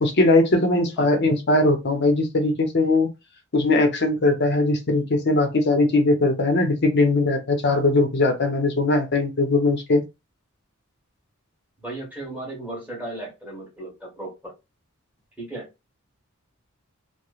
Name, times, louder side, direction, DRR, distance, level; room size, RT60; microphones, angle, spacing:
voice 1, 0.0-3.1 3.5-10.0, left 2 dB, 55° left, 0.7 m, -20 dB
voice 2, 11.8-14.5 15.4-15.7, right 2 dB, 5° right, 1.3 m, -35 dB
3.0 x 2.1 x 2.3 m
head